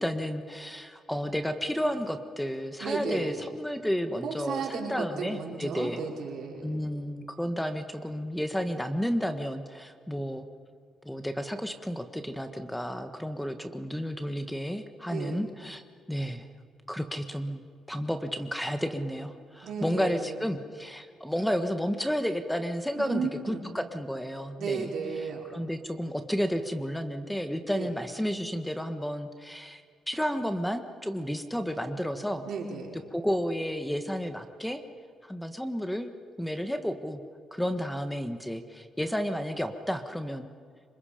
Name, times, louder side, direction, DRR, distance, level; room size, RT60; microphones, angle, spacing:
voice 1, 0.0-6.0 6.6-10.5 11.0-15.8 16.1-16.5 16.9-17.6 17.9-24.9 25.5-32.4 33.1-34.8 35.2-36.1 36.4-37.2 37.5-40.5, equal, 5° left, 7 dB, 1.5 m, -32 dB
voice 2, 2.8-3.4 4.2-6.8 15.1-15.4 19.6-20.4 23.0-23.7 24.6-25.4 27.7-27.9 32.4-33.0, right 4 dB, 70° right, -1 dB, 5.1 m, -34 dB
27.0 x 25.5 x 5.2 m, 2.1 s
cardioid pair, 90°, 0 cm